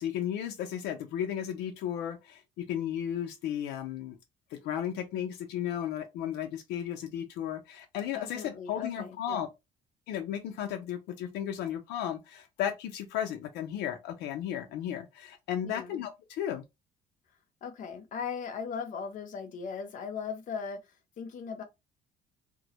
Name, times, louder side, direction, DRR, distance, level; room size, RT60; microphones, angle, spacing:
voice 1, 0.0-4.2 4.5-9.5 10.1-16.6, left 10 dB, 90° left, 0.5 m, -34 dB
voice 2, 8.1-9.5 15.6-16.0 17.6-20.8 21.2-21.6, left 6 dB, 50° left, 0.6 m, -38 dB
2.2 x 2.1 x 2.7 m
cardioid pair, 110°, 17 cm